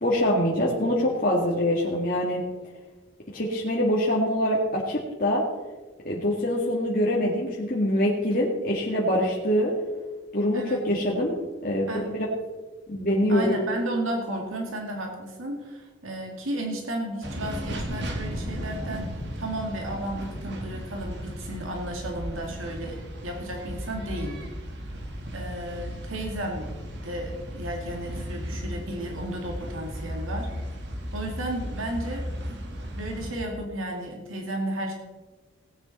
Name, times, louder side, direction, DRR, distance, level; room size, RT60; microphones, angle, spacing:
voice 1, 0.0-2.4 3.3-5.4 6.0-9.7 10.3-11.3 11.6-12.3 12.9-13.6, left 1 dB, 45° left, -5 dB, 2.0 m, -24 dB
voice 2, 10.5-10.8 11.9-12.1 12.9-19.1 19.4-24.4 25.3-30.5 31.1-32.6 32.9-34.9, right 1 dB, 85° right, 1 dB, 2.3 m, -33 dB
sound 1, 17.2-33.3, equal, 55° right, 2.0 m, -35 dB
18.5 x 9.4 x 4.2 m, 1.3 s
head